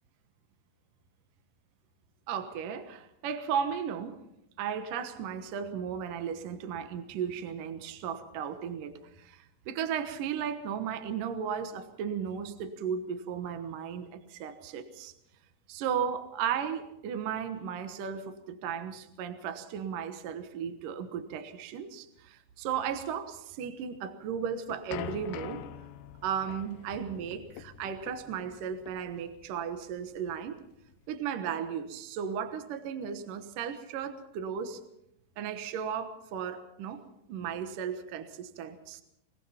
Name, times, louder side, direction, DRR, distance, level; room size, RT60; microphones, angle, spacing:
voice 1, 2.3-4.2 4.6-15.1 15.7-25.6 26.2-30.6 31.1-34.8 35.4-37.0 37.3-39.0, right 7 dB, 70° right, 8 dB, 2.1 m, -35 dB
sound 1, 24.3-31.1, left 11 dB, 90° left, 2.1 m, -45 dB
24.0 x 18.5 x 5.7 m, 0.81 s
omnidirectional pair, 5.5 m